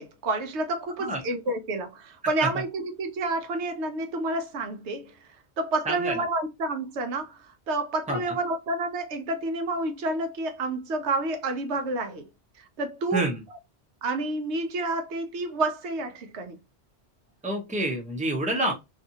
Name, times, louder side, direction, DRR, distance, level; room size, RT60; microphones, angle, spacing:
voice 1, 0.0-5.1 5.6-7.4 7.7-12.3 12.6-13.2 14.0-16.6, right 2 dB, 80° right, 0.9 m, -29 dB
voice 2, 17.4-18.7, right 1 dB, 10° right, 0.6 m, -27 dB
2.7 x 2.4 x 2.6 m
omnidirectional pair, 1.1 m